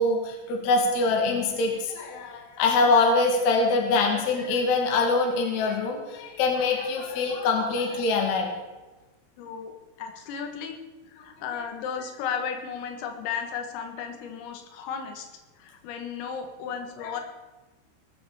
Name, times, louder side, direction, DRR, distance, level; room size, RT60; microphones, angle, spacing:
voice 1, 0.0-8.5 17.0-17.1, left 3 dB, 45° left, 2 dB, 2.7 m, -24 dB
voice 2, 9.4-10.8 11.1-15.3 15.6-17.2, left 7 dB, 90° left, 6 dB, 4.2 m, -34 dB
18.5 x 7.8 x 7.1 m, 1.2 s
omnidirectional pair, 5.8 m